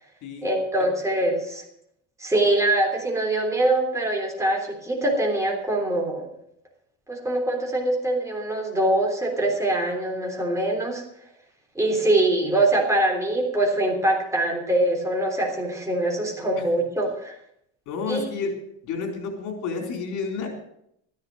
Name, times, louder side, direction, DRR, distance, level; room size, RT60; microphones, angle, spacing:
voice 1, 0.4-1.6 2.2-6.3 7.1-11.0 11.7-17.4 18.1-18.2, right 1 dB, 10° right, 0 dB, 3.4 m, -23 dB
voice 2, 17.9-18.6 18.8-20.6, left 4 dB, 70° left, 3 dB, 3.9 m, -30 dB
13.5 x 10.5 x 6.3 m, 0.72 s
cardioid pair, 145°, 31 cm